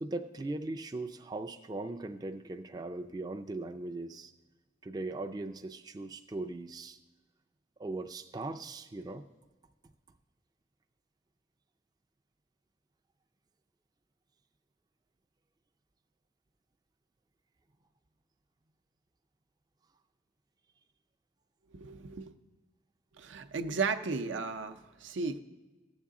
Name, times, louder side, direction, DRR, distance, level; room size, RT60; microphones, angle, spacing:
voice 1, 0.0-4.3 4.8-7.0 7.8-9.2, right 2 dB, 20° right, 6 dB, 0.3 m, -39 dB
voice 2, 21.7-22.3 23.1-25.4, right 4 dB, 85° right, 7 dB, 0.6 m, -35 dB
15.0 x 7.1 x 3.7 m, 1.2 s
head